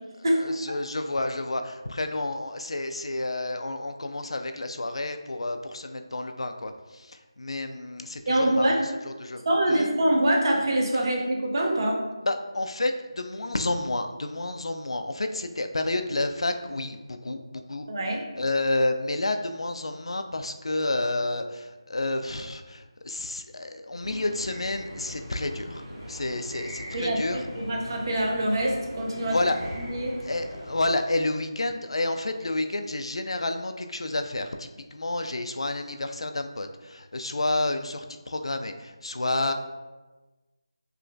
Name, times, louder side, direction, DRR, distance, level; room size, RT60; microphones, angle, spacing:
voice 1, 0.3-9.4 9.7-9.9 12.2-27.4 29.2-29.6 30.2-39.5, left 2 dB, 75° left, 7 dB, 0.3 m, -30 dB
voice 2, 8.3-8.8 9.5-12.1 17.9-18.2 26.9-29.4 29.9-30.2, right 1 dB, 45° right, -1 dB, 0.7 m, -24 dB
sound 1, 24.0-30.9, equal, 15° right, 0.8 m, -40 dB
3.2 x 2.9 x 2.5 m, 1.2 s
figure-of-eight pair, 165°, 3 cm